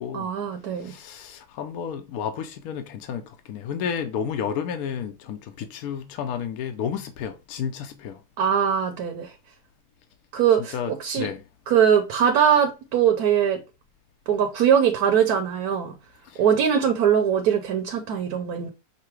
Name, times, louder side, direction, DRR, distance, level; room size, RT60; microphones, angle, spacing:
voice 1, 0.1-0.9 8.4-9.3 10.3-11.3 11.7-13.6 14.3-15.9 16.4-18.7, right 8 dB, 80° right, 1.2 m, -21 dB
voice 2, 0.8-8.2 10.6-11.4 16.3-16.5, left 7 dB, 75° left, 1.0 m, -32 dB
5.7 x 2.0 x 4.4 m
omnidirectional pair, 1.6 m